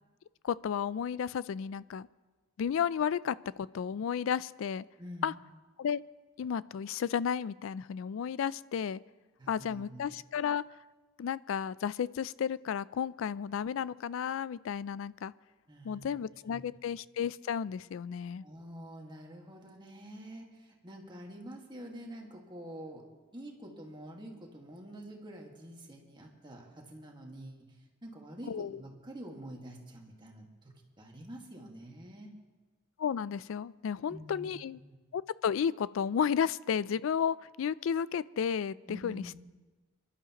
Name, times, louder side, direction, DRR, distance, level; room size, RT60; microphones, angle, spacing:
voice 1, 0.4-2.1 2.6-4.8 5.2-5.3 5.8-6.0 6.4-9.0 9.5-10.6 11.2-15.3 15.8-18.4 28.5-28.7 33.0-34.8 35.1-39.3, left 7 dB, 70° left, 19 dB, 0.3 m, -33 dB
voice 2, 5.0-5.4 9.4-10.2 15.7-16.1 16.5-16.6 18.4-23.0 23.3-32.3 34.1-35.0 38.9-39.4, right 1 dB, 25° right, 0 dB, 1.8 m, -47 dB
25.5 x 12.0 x 3.0 m, 1.3 s
head